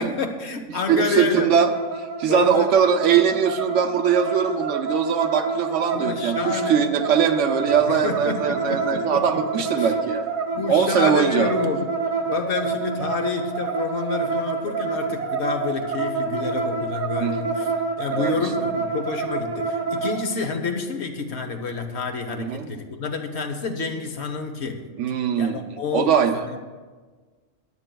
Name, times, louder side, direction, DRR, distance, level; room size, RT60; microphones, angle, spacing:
voice 1, 0.0-1.5 2.3-2.7 5.9-6.9 7.9-9.9 10.5-11.9 12.3-17.7 18.0-24.9 25.4-26.6, left 4 dB, 60° left, 5 dB, 1.1 m, -29 dB
voice 2, 0.9-1.7 2.0-10.3 10.7-11.5 17.2-17.5 18.1-18.4 22.4-22.7 25.0-25.6 25.9-26.6, right 7 dB, 70° right, 7 dB, 1.0 m, -21 dB
sound 1, 1.6-20.2, right 4 dB, 85° right, 1.7 m, -28 dB
16.5 x 10.5 x 2.3 m, 1.4 s
omnidirectional pair, 1.4 m